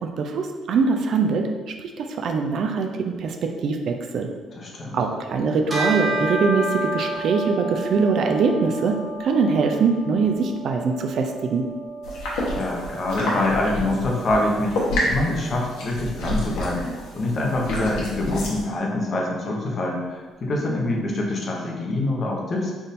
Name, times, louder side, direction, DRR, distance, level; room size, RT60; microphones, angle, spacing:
voice 1, 0.0-4.3 4.9-11.6, right 4 dB, 60° right, 5 dB, 0.4 m, -23 dB
voice 2, 4.5-5.0 12.5-14.8 15.0-16.9 17.1-22.7, left 2 dB, 40° left, -1 dB, 0.8 m, -25 dB
Bell, 5.7-15.4, right 2 dB, 20° right, 1.2 m, -31 dB
sound 1, 12.0-18.6, left 1 dB, 85° left, 1.1 m, -29 dB
3.5 x 2.5 x 4.1 m, 1.4 s
cardioid pair, 115°, 0 cm